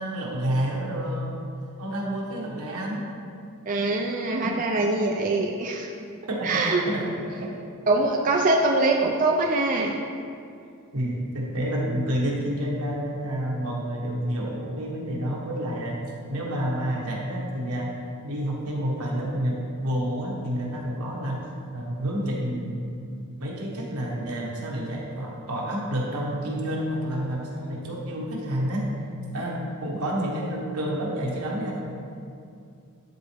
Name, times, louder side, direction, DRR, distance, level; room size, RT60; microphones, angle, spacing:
voice 1, 0.0-1.4 1.8-3.0 6.0-7.6 10.9-16.0 16.3-17.9 18.2-21.4 21.7-28.9 29.3-31.8, equal, 80° right, -3 dB, 1.3 m, -29 dB
voice 2, 3.7-5.9 6.4-6.8 7.9-9.9, right 2 dB, 35° right, 0 dB, 0.4 m, -23 dB
11.0 x 4.1 x 3.4 m, 2.5 s
head